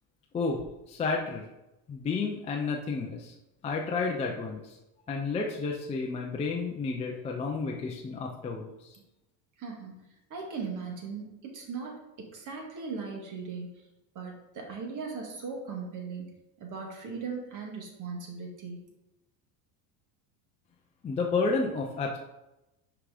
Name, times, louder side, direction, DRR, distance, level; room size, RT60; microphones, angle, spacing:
voice 1, 0.3-1.5 1.9-3.3 3.6-4.8 5.1-9.0 21.0-22.2, left 4 dB, 15° left, 0 dB, 0.4 m, -31 dB
voice 2, 9.6-10.0 10.3-13.8 14.2-16.3 16.6-18.9, right 5 dB, 40° right, 0 dB, 1.9 m, -38 dB
5.8 x 5.0 x 4.9 m, 0.94 s
cardioid pair, 155°, 47 cm